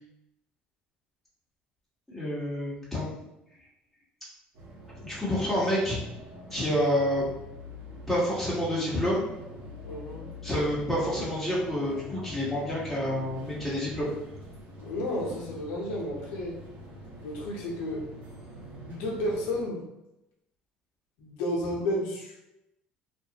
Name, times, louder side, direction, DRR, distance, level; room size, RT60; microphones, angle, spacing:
voice 1, 2.1-3.2 5.0-6.0 6.5-7.2 8.1-9.2 10.4-14.1, equal, 5° left, -8 dB, 1.2 m, -28 dB
sound 1, 4.5-19.6, equal, 65° right, 1.0 m, -44 dB
voice 2, 9.8-10.2 14.8-16.5 17.2-18.0 18.8-19.8 21.2-22.4, left 1 dB, 80° left, -3 dB, 0.8 m, -32 dB
2.5 x 2.4 x 2.8 m, 0.90 s
supercardioid pair, 85°, 4 cm